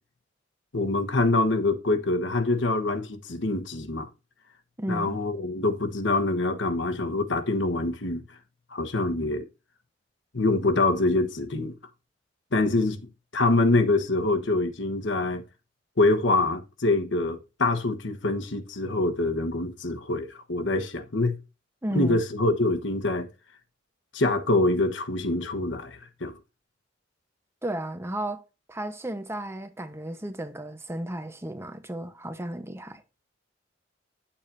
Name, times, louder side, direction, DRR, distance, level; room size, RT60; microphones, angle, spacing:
voice 1, 0.7-4.1 4.9-8.2 8.7-9.5 10.3-11.7 12.5-15.4 16.0-21.4 21.9-23.3 24.1-26.4, left 2 dB, 75° left, 1.2 m, -25 dB
voice 2, 4.8-5.2 21.8-22.2 27.6-28.4 28.7-33.0, right 1 dB, 15° right, 1.0 m, -33 dB
10.5 x 7.2 x 2.7 m
head